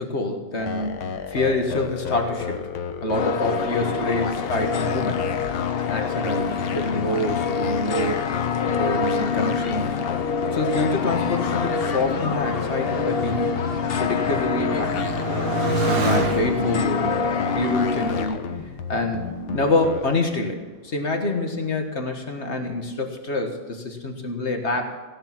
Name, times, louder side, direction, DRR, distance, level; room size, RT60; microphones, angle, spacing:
voice 1, 0.0-2.6 3.0-5.2 5.8-8.3 8.8-10.0 10.5-13.6 14.0-15.0 15.7-18.5 18.9-24.8, left 2 dB, 35° left, 4 dB, 1.5 m, -26 dB
sound 1, 0.6-20.2, left 6 dB, 85° left, 1.8 m, -33 dB
sound 2, 3.1-18.2, left 5 dB, 70° left, 0.5 m, -26 dB
Motorcycle, 10.1-19.1 19.8-20.4, right 3 dB, 55° right, 2.1 m, -31 dB
16.0 x 10.5 x 6.0 m, 1.3 s
omnidirectional pair, 2.2 m